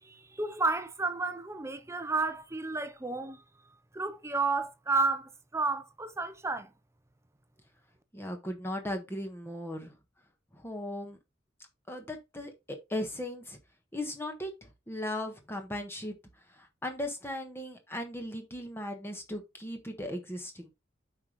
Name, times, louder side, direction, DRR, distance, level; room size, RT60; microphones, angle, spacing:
voice 1, 0.0-3.4 3.9-6.7, right 3 dB, 15° right, 0.7 m, -31 dB
voice 2, 8.1-9.9 10.5-11.2 11.9-13.6 13.9-16.1 16.6-20.7, left 1 dB, 15° left, 1.3 m, -37 dB
8.0 x 5.1 x 3.0 m
head